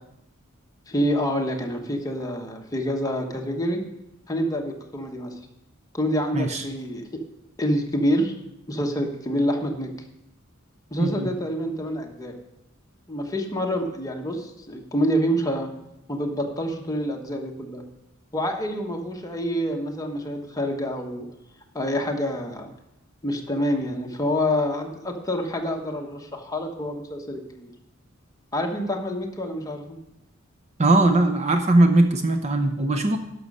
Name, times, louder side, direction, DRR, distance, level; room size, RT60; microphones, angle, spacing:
voice 1, 0.9-3.8 4.3-5.3 5.9-7.2 7.6-8.3 8.7-9.9 10.9-12.3 13.1-15.7 16.1-17.8 18.3-21.3 21.7-22.7 23.2-27.7 28.5-30.0, equal, 15° left, 2 dB, 1.2 m, -27 dB
voice 2, 6.3-6.6 11.0-11.3 30.8-33.2, right 2 dB, 30° right, 6 dB, 0.7 m, -20 dB
11.5 x 6.3 x 5.4 m, 0.84 s
head